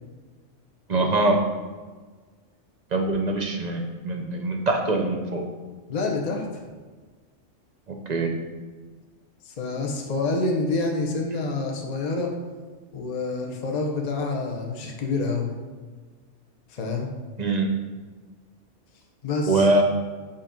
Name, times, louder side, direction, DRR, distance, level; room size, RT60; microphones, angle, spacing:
voice 1, 0.9-1.4 2.9-5.4 7.9-8.3 17.4-17.7 19.5-19.8, right 2 dB, 45° right, 3 dB, 0.6 m, -23 dB
voice 2, 5.9-6.6 9.4-12.3 12.9-15.5 16.7-17.1 19.2-19.7, left 3 dB, 40° left, 1 dB, 0.7 m, -27 dB
7.5 x 2.8 x 5.1 m, 1.4 s
omnidirectional pair, 1.3 m